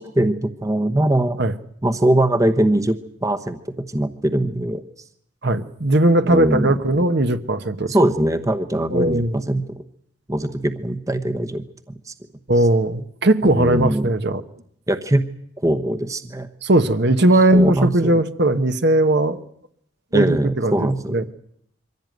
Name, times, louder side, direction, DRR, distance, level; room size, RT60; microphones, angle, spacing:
voice 1, 0.0-1.4 1.8-3.6 3.9-4.8 6.3-6.7 7.9-9.8 10.3-11.6 12.1-12.2 13.4-14.1 14.9-15.2 15.6-16.5 17.5-18.2 20.1-21.2, right 1 dB, 15° right, 9 dB, 1.0 m, -21 dB
voice 2, 5.4-7.9 8.9-9.5 12.5-14.4 16.6-19.4 20.1-21.2, right 1 dB, 55° right, 9 dB, 1.2 m, -18 dB
24.0 x 16.0 x 9.3 m, 0.72 s
head